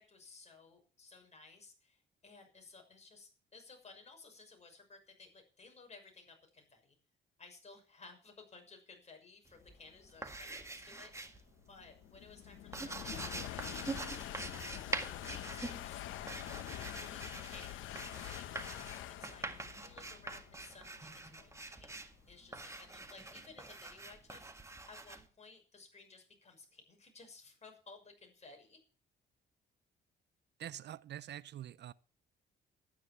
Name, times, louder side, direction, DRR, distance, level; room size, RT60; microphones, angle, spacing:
voice 1, 0.0-7.0 7.4-21.9 22.3-28.8, left 4 dB, 35° left, 6.4 m, -58 dB
sound 1, 9.5-11.5 11.8-25.2, right 2 dB, 15° right, 1.9 m, -45 dB
sound 2, 10.0-23.3, left 13 dB, 85° left, 0.9 m, -46 dB
voice 2, 30.6-31.9, right 11 dB, 60° right, 0.6 m, -45 dB
12.5 x 10.5 x 7.1 m
cardioid pair, 90°, 20 cm